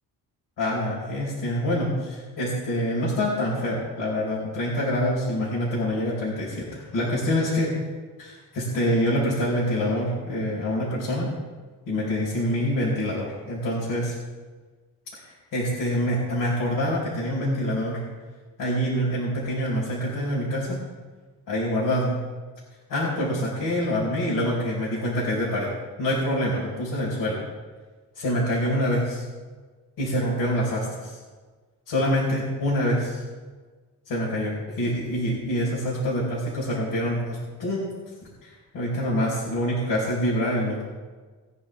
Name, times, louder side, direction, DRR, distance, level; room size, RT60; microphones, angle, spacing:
voice 1, 0.6-7.7 8.2-11.3 11.9-14.1 15.2-18.0 18.6-20.8 21.5-22.2 22.9-25.7 26.0-27.4 28.1-29.2 30.0-31.2 31.9-33.2 34.1-37.8 38.4-40.8, equal, 75° left, -6 dB, 4.5 m, -26 dB
20.5 x 9.9 x 3.4 m, 1.4 s
cardioid pair, 135°, 36 cm